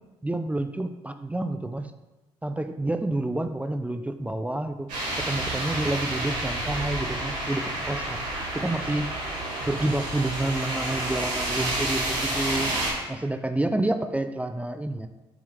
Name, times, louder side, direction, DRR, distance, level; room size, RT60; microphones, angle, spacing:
voice 1, 0.2-1.9 2.4-4.9 5.2-8.2 8.5-9.2 9.7-12.7 13.1-15.1, right 2 dB, 10° right, 8 dB, 0.5 m, -29 dB
sound 1, 4.9-12.9, right 1 dB, 75° right, 2.4 m, -30 dB
7.2 x 4.9 x 3.5 m, 1.1 s
hypercardioid pair, 55°, 13 cm